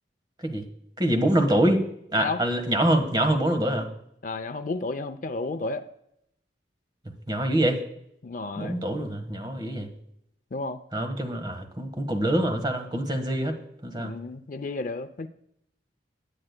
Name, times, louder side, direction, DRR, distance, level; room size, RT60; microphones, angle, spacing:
voice 1, 1.0-1.8 2.1-3.9 7.3-7.8 8.6-9.9 10.9-13.6 13.8-14.1, right 1 dB, 25° right, 6 dB, 1.3 m, -25 dB
voice 2, 4.2-5.8 8.2-8.8 10.5-10.8 14.0-15.3, left 3 dB, 45° left, 11 dB, 0.5 m, -32 dB
18.5 x 8.7 x 2.2 m, 0.75 s
head